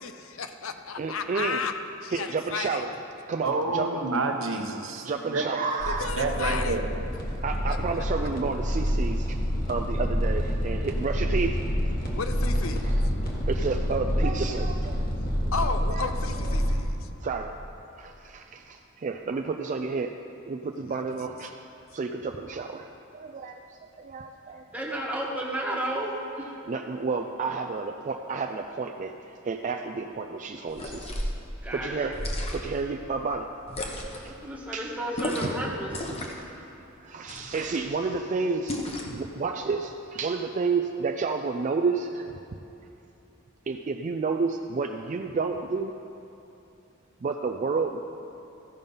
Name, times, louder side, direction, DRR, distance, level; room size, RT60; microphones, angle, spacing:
voice 1, 0.0-1.7 2.0-2.8 5.8-6.8 7.6-8.0 12.1-12.9 15.5-17.1 20.9-21.2, left 5 dB, 80° left, 8 dB, 0.6 m, -34 dB
voice 2, 1.0-1.6 2.1-2.9 3.3-4.0 5.0-6.1 7.4-9.4 9.7-11.6 12.9-13.0 13.5-15.0 15.5-16.1 16.5-16.8 17.2-17.5 18.0-20.1 20.5-21.5 21.9-22.9 23.1-23.6 24.0-24.6 26.7-29.1 29.4-31.3 31.7-32.2 32.5-33.5 34.2-34.3 34.7-34.9 35.4-35.5 37.0-42.3 43.7-45.9 47.2-48.0, right 4 dB, 35° right, 5 dB, 0.3 m, -30 dB
voice 3, 3.4-5.4 6.2-6.9, right 3 dB, 70° right, 4 dB, 0.9 m, -28 dB
sound 1, 5.8-16.8, equal, 45° left, 1.4 m, -27 dB
voice 4, 24.7-26.5 31.6-32.2 34.4-36.0, right 1 dB, 5° right, -3 dB, 1.3 m, -32 dB
sound 2, 30.7-31.4 32.1-32.8 33.7-34.3 35.1-35.6 35.9-36.5 37.3-37.8 38.7-39.2, left 1 dB, 30° left, 0.9 m, -33 dB
14.5 x 5.4 x 5.4 m, 2.9 s
head